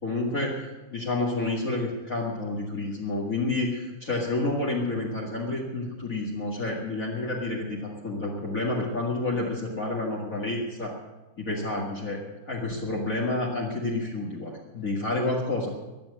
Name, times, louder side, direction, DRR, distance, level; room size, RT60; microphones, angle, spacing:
voice 1, 0.0-10.9 11.4-15.7, left 2 dB, 40° left, -3 dB, 2.3 m, -29 dB
15.0 x 10.5 x 7.6 m, 1.1 s
omnidirectional pair, 2.3 m